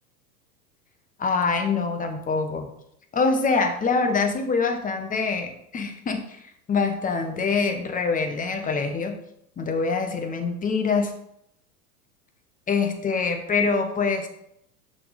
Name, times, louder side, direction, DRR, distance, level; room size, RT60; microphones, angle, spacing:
voice 1, 1.2-2.7 3.1-9.1 9.6-11.1 12.7-14.3, left 4 dB, 15° left, 5 dB, 0.9 m, -25 dB
5.9 x 4.2 x 4.7 m, 0.75 s
hypercardioid pair, 95°, 49 cm